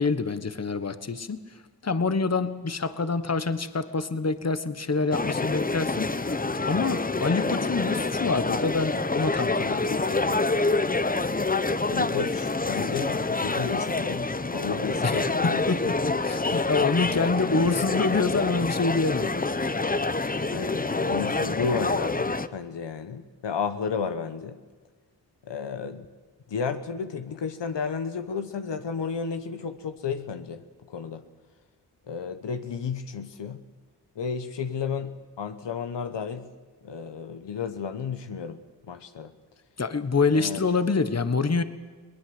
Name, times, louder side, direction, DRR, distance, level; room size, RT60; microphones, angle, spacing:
voice 1, 0.0-6.4 6.7-10.4 15.0-19.6 39.8-41.6, left 4 dB, 35° left, 11 dB, 1.4 m, -26 dB
sound 1, 5.1-22.5, left 3 dB, 20° left, 0.9 m, -27 dB
voice 2, 11.9-15.9 17.1-17.2 20.5-24.6 25.4-26.1 26.5-30.6 30.9-31.2 32.1-33.6 34.1-36.5 36.8-38.6 38.9-39.3 40.3-40.6, left 6 dB, 80° left, 9 dB, 1.2 m, -32 dB
22.0 x 19.5 x 7.9 m, 1.4 s
cardioid pair, 50°, 42 cm